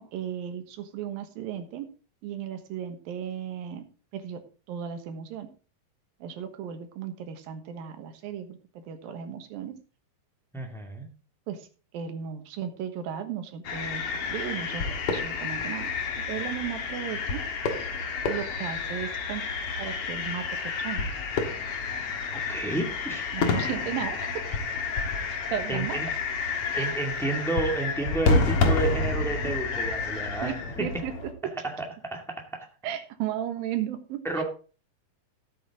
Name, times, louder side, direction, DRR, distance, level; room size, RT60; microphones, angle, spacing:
voice 1, 0.0-1.9 2.2-3.8 4.1-5.5 6.2-9.7 11.5-11.7 11.9-15.9 16.3-17.4 18.3-19.4 19.8-20.5 20.8-21.1 23.3-24.6 25.5-26.0 26.8-26.9 29.4-29.5 30.4-31.1 32.8-34.4, right 9 dB, 70° right, 8 dB, 3.0 m, -35 dB
voice 2, 10.5-11.1 22.3-23.3 25.7-26.1 26.7-30.5 31.6-31.7 32.1-32.7 34.2-34.4, right 2 dB, ahead, 2 dB, 0.6 m, -31 dB
sound 1, 13.6-31.3, left 4 dB, 50° left, 1.9 m, -29 dB
13.5 x 8.0 x 3.7 m, 0.36 s
omnidirectional pair, 4.4 m